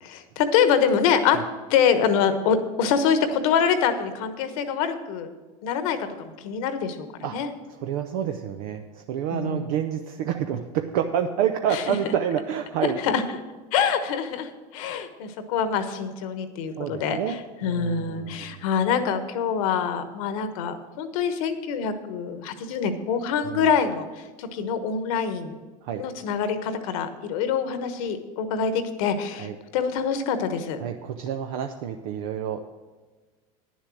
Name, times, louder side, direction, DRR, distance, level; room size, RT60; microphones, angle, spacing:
voice 1, 0.0-1.4 1.7-5.3 5.6-7.1 7.3-7.5 9.3-9.7 11.7-11.8 12.8-13.2 13.7-25.6 26.0-30.8, left 7 dB, 70° left, 10 dB, 1.2 m, -25 dB
voice 2, 7.7-13.0 16.8-17.4 17.6-18.6 23.4-23.7 25.8-26.0 29.4-29.5 30.8-32.6, right 9 dB, 70° right, 5 dB, 0.7 m, -28 dB
10.0 x 7.3 x 6.2 m, 1.3 s
hypercardioid pair, 95°, 19 cm